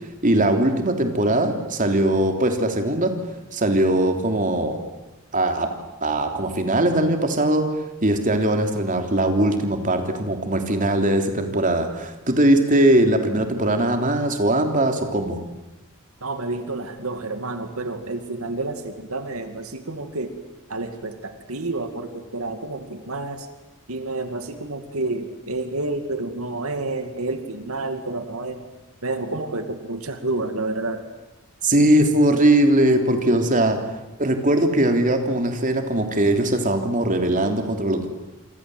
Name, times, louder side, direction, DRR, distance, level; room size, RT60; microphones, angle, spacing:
voice 1, 0.2-3.1 3.5-4.8 5.3-5.7 6.0-7.7 8.0-15.4 31.6-33.8 34.2-38.1, right 1 dB, 35° right, 5 dB, 3.4 m, -20 dB
voice 2, 16.2-20.4 20.7-23.5 23.9-28.6 29.0-31.1, right 2 dB, 75° right, 7 dB, 2.4 m, -29 dB
27.5 x 25.5 x 8.0 m, 1.0 s
head